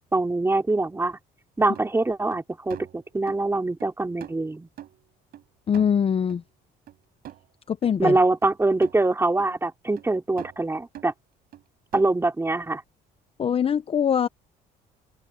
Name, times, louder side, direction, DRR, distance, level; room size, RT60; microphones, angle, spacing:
voice 1, 0.1-1.2 1.6-4.7 8.0-11.1 11.9-12.8, right 2 dB, 15° right, 4.1 m, -24 dB
sound 1, 1.8-1.9 2.3-2.4 2.7-3.5 3.8-3.9 4.2-5.4 5.7-6.4 6.9-7.0 7.2-7.5 7.8-8.0 8.4-9.0 9.4-9.5 10.0-10.1 10.4-10.7 10.9-11.1 11.5-11.6 11.9-12.3, right 12 dB, 65° right, 6.2 m, -44 dB
voice 2, 5.7-6.4 7.7-8.2 13.4-14.3, left 8 dB, 35° left, 0.6 m, -22 dB
cardioid pair, 110°, 17 cm